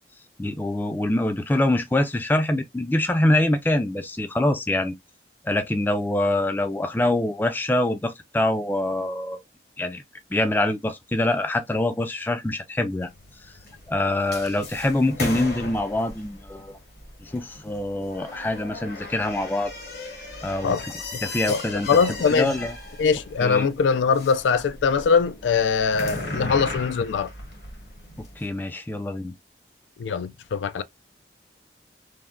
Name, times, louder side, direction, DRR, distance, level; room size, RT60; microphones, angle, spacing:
voice 1, 0.4-4.9 5.4-9.4 9.8-10.0 10.3-13.1 13.4-13.5 13.9-16.8 17.2-19.7 20.4-20.8 21.2-21.9 22.3-22.7 23.4-23.7 28.2-29.4, left 1 dB, 10° left, 0.3 m, -24 dB
sound 1, 13.0-28.4, left 2 dB, 60° left, 1.0 m, -37 dB
voice 2, 21.9-22.5 23.0-27.3 30.0-30.8, left 5 dB, 85° left, 0.4 m, -22 dB
3.3 x 2.1 x 2.4 m
head